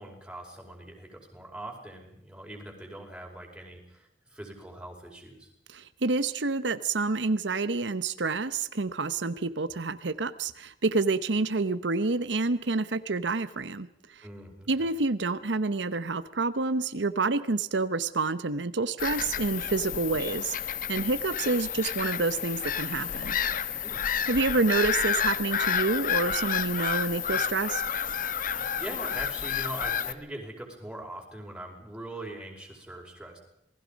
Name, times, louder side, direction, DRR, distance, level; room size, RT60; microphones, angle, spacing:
voice 1, 0.0-5.5 14.2-14.9 23.8-24.0 24.5-24.6 28.2-28.4 28.8-33.4, right 1 dB, 5° right, 0 dB, 4.9 m, -42 dB
voice 2, 5.7-14.3 14.7-23.4 24.3-27.8, right 3 dB, 85° right, 13 dB, 0.9 m, -28 dB
Bird vocalization bird call bird song / Gull seagull, 19.0-30.1, left 8 dB, 50° left, 1.0 m, -30 dB
27.0 x 20.0 x 5.2 m, 0.77 s
head